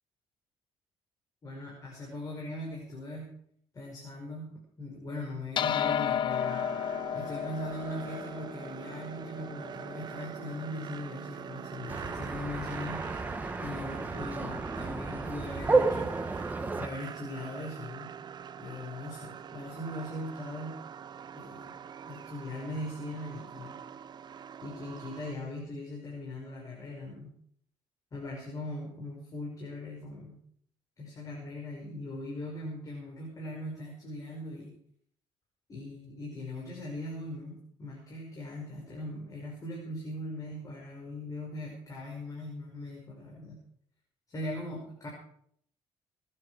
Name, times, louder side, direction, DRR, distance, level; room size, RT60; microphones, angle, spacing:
voice 1, 1.4-3.3 3.7-6.6 7.1-13.0 13.6-16.1 16.8-18.1 18.6-20.8 21.3-21.7 22.0-23.8 24.6-27.3 28.1-30.4 31.0-34.7 35.7-43.6 44.3-45.1, left 1 dB, 35° left, -2 dB, 5.4 m, -40 dB
sound 1, 5.6-10.2, left 9 dB, 50° left, 0.6 m, -33 dB
sound 2, 6.3-25.3, right 8 dB, 45° right, 0.7 m, -44 dB
sound 3, 11.9-16.9, right 3 dB, 15° right, 1.3 m, -31 dB
23.5 x 9.8 x 4.9 m, 0.67 s
cardioid pair, 105°, 10 cm